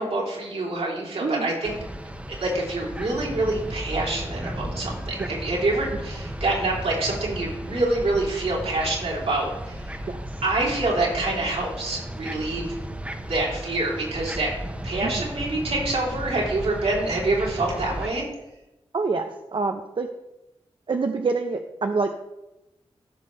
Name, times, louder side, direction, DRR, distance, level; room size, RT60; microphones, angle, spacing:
voice 1, 0.0-1.7 2.4-9.8 10.4-12.7 13.2-14.5 14.8-18.2, right 2 dB, 80° right, -4 dB, 3.1 m, -26 dB
voice 2, 1.2-1.5 5.2-5.3 10.1-10.3 15.0-15.2 18.9-19.2 19.5-20.1 20.9-22.1, right 4 dB, 55° right, 5 dB, 0.6 m, -26 dB
sound 1, 1.6-18.1, equal, 10° right, 1.1 m, -35 dB
14.5 x 5.5 x 3.2 m, 0.95 s
cardioid pair, 50°, 10 cm